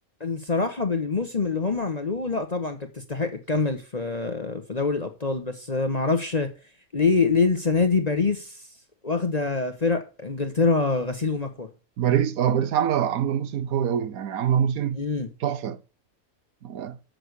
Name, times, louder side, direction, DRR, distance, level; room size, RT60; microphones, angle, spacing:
voice 1, 0.2-6.5 6.9-8.6 9.0-11.7 14.9-15.3, left 4 dB, 30° left, 1.0 m, -25 dB
voice 2, 12.0-15.0 15.4-15.8 16.6-17.0, right 9 dB, 80° right, 1.2 m, -24 dB
7.7 x 6.6 x 8.0 m
omnidirectional pair, 1.5 m